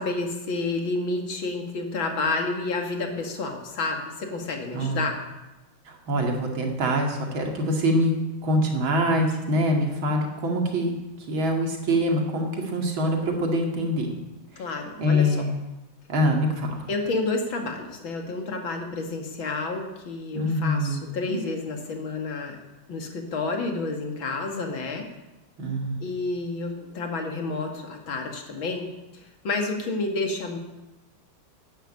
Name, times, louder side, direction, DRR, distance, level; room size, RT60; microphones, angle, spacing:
voice 1, 0.0-5.2 14.6-15.5 16.9-22.6 22.9-25.1 26.0-28.9 29.1-30.6, left 3 dB, 80° left, 3 dB, 2.8 m, -30 dB
voice 2, 4.7-5.0 5.9-8.1 8.4-11.0 11.3-14.2 15.0-15.6 16.1-16.9 20.3-21.4 25.6-25.9, equal, 85° right, 2 dB, 3.1 m, -24 dB
12.0 x 10.5 x 8.7 m, 1.0 s
omnidirectional pair, 2.1 m